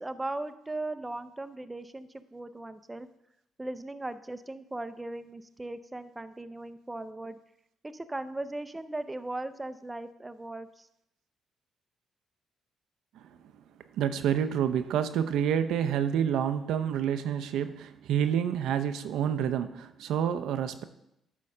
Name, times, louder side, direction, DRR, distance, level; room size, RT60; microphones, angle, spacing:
voice 1, 0.0-3.1 3.6-7.4 7.8-10.9, right 2 dB, 15° right, 11 dB, 0.5 m, -38 dB
voice 2, 13.9-20.8, right 9 dB, 85° right, 9 dB, 0.5 m, -28 dB
10.5 x 3.7 x 5.4 m, 0.82 s
cardioid pair, 90°, 0 cm